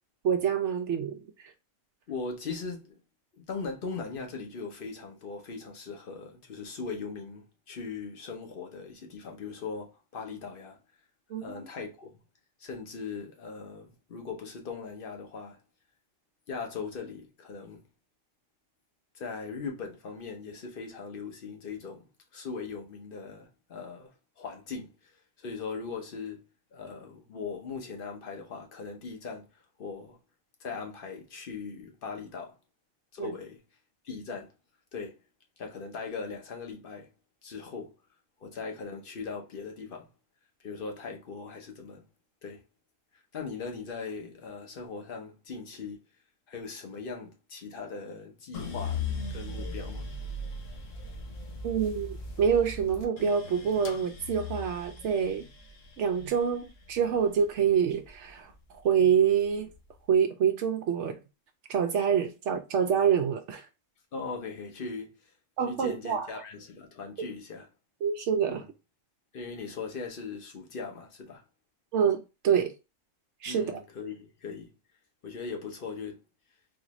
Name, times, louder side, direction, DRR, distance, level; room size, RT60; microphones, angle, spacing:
voice 1, 0.2-1.2 11.3-11.6 33.2-33.3 51.6-55.5 56.0-58.5 58.8-59.7 60.1-61.2 61.7-63.6 65.6-66.3 68.0-68.6 71.9-72.7 73.4-73.8, right 7 dB, 70° right, 0.9 m, -26 dB
voice 2, 2.1-3.0 3.3-10.8 11.4-12.1 12.6-15.6 16.5-17.9 19.1-25.1 25.4-30.2 30.6-32.6 33.1-33.6 34.0-34.5 34.9-35.1 35.6-37.1 37.4-37.9 38.4-40.1 40.6-42.0 42.4-42.6 43.3-46.0 46.5-49.0 49.3-50.1 64.1-65.3 65.7-67.7 68.5-68.6 69.3-71.4 73.5-74.7 75.2-76.2, left 4 dB, 50° left, 1.0 m, -39 dB
sound 1, 48.5-58.7 59.2-60.0, left 3 dB, 80° left, 1.2 m, -39 dB
4.1 x 2.5 x 2.9 m
omnidirectional pair, 1.3 m